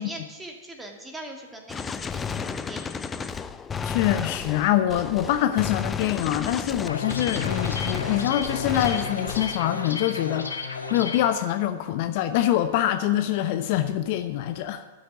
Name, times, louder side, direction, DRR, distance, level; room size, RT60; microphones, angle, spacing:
voice 1, 0.0-3.3, right 1 dB, 10° right, 1 dB, 2.5 m, -41 dB
Gunshot gunfire, 1.7-9.7, left 6 dB, 20° left, 0.6 m, -32 dB
voice 2, 3.8-14.8, left 12 dB, 50° left, 9 dB, 0.8 m, -25 dB
sound 1, 6.9-11.3, left 5 dB, 90° left, 1.6 m, -32 dB
12.5 x 6.5 x 9.5 m, 1.2 s
figure-of-eight pair, 105°, 0 cm